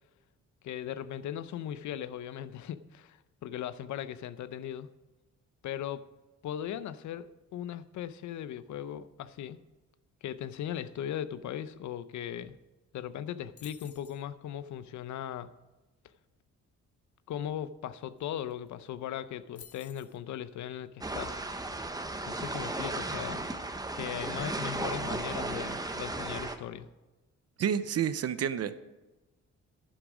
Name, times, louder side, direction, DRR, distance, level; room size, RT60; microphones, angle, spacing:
voice 1, 0.6-4.9 5.6-6.0 6.4-9.6 10.2-12.6 12.9-15.5 17.3-21.4 22.3-23.4 23.9-26.9, left 10 dB, 70° left, 14 dB, 0.7 m, -38 dB
sound 1, 13.6-14.2 18.2-18.3 18.5-18.8 19.5-20.2, left 9 dB, 50° left, 1.2 m, -52 dB
sound 2, 21.0-26.6, right 2 dB, 10° right, 1.0 m, -35 dB
voice 2, 27.6-28.7, right 8 dB, 55° right, 14 dB, 0.8 m, -29 dB
11.0 x 10.0 x 5.0 m, 1.1 s
cardioid pair, 90°, 30 cm